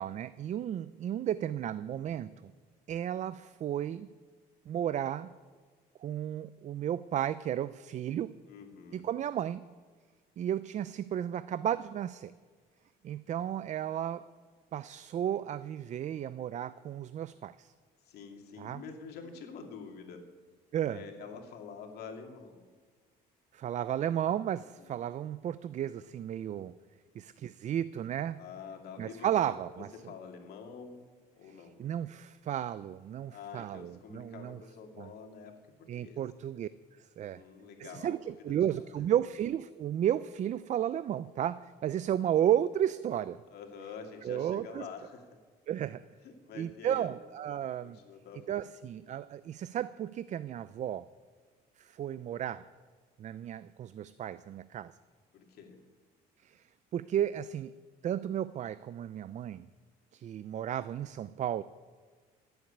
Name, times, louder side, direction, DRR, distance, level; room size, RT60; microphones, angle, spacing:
voice 1, 0.0-2.3 2.9-4.1 4.7-5.3 6.0-8.4 8.9-9.6 10.4-12.3 13.0-14.3 14.7-17.7 18.6-18.8 20.7-21.0 23.5-26.7 27.2-28.4 29.0-29.9 31.8-34.6 35.0-35.1 35.9-36.7 37.0-37.4 37.8-43.4 44.2-44.8 45.7-46.0 46.5-48.0 48.5-51.1 51.8-52.7 53.2-54.9 56.4-56.6 56.9-57.7 58.0-59.7 60.1-61.6, right 10 dB, 45° right, 16 dB, 0.4 m, -33 dB
voice 2, 8.5-9.1 18.0-20.3 20.9-22.7 24.8-25.0 28.3-29.3 29.9-31.0 31.4-31.8 33.3-35.5 35.8-36.2 37.2-38.3 43.5-45.4 45.8-45.9 46.2-47.1 47.8-48.6 49.0-49.1 55.3-55.8, left 5 dB, 70° left, 3 dB, 2.4 m, -47 dB
15.5 x 8.0 x 8.5 m, 1.5 s
cardioid pair, 110°, 17 cm